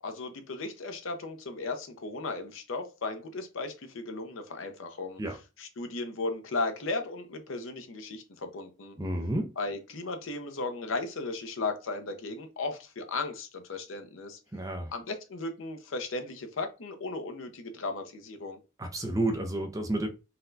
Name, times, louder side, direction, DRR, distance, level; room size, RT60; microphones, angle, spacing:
voice 1, 0.0-5.2 5.6-9.0 9.6-14.4 14.9-18.6, left 3 dB, 80° left, 0.6 m, -36 dB
voice 2, 9.0-9.5 14.5-14.9 18.8-20.1, right 1 dB, 15° right, 0.4 m, -30 dB
4.0 x 2.2 x 2.6 m
head